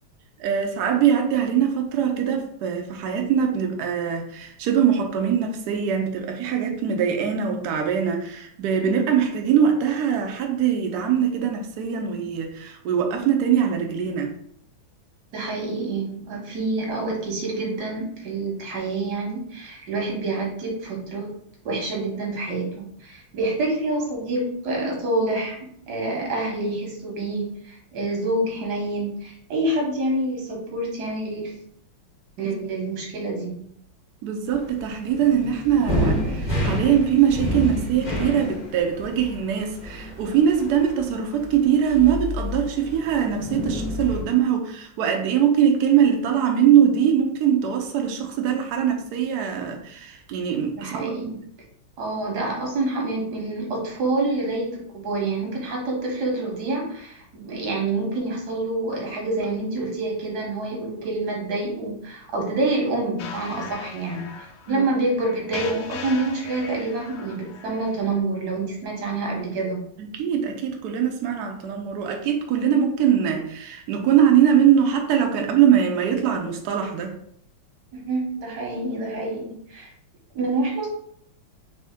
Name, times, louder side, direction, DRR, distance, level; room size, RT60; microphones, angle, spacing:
voice 1, 0.4-14.3 32.4-32.5 34.2-51.1 64.7-64.9 70.0-77.1, right 8 dB, 85° right, 3 dB, 0.8 m, -22 dB
voice 2, 15.3-21.3 21.6-25.6 25.9-31.6 32.4-33.6 50.8-51.4 52.0-64.3 64.7-69.8 77.9-79.9 80.3-80.9, right 2 dB, 55° right, -1 dB, 1.5 m, -27 dB
sound 1, 34.4-44.2, left 1 dB, 50° left, 0.5 m, -29 dB
sound 2, 63.2-68.2, left 5 dB, 75° left, 1.0 m, -39 dB
4.2 x 2.7 x 3.4 m, 0.68 s
omnidirectional pair, 2.3 m